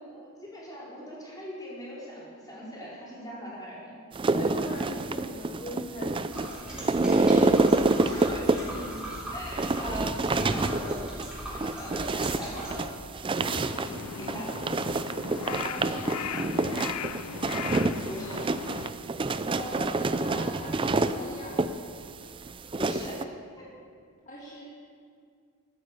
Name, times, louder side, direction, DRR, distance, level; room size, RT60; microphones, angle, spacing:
voice 1, 0.1-4.0 7.3-7.7 7.9-9.0 9.3-11.0 11.4-13.0 13.4-14.6 18.1-18.4 22.8-23.3 23.6-23.7, equal, 15° left, -7 dB, 4.8 m, -40 dB
sound 1, 4.1-23.2, right 3 dB, 25° right, 0.4 m, -28 dB
voice 2, 4.3-7.2 10.3-10.8 15.4-17.0 19.5-21.9 24.2-24.6, equal, 35° left, -4 dB, 1.8 m, -41 dB
sound 2, 6.3-12.7, equal, 5° right, 3.6 m, -39 dB
Crow, 13.4-18.9, left 8 dB, 80° left, 0.5 m, -38 dB
14.0 x 9.6 x 8.3 m, 2.2 s
head